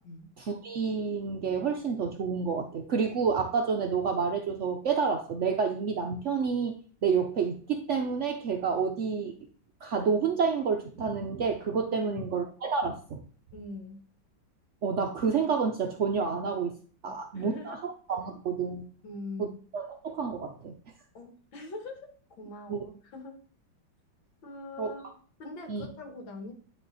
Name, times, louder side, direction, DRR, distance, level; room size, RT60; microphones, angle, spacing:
voice 1, 0.4-6.8 7.0-9.3 9.8-13.2 14.8-16.8 17.0-18.9 19.4-19.5 19.7-20.7 22.7-22.8 24.8-24.9 25.7-25.9, right 5 dB, 80° right, 3 dB, 0.6 m, -29 dB
voice 2, 12.0-12.3 13.5-14.0 17.1-17.8 19.0-19.6 21.1-22.1 22.4-23.4 24.4-25.0 25.4-26.5, left 2 dB, 80° left, 4 dB, 2.2 m, -42 dB
10.0 x 3.4 x 4.0 m, 0.43 s
omnidirectional pair, 2.1 m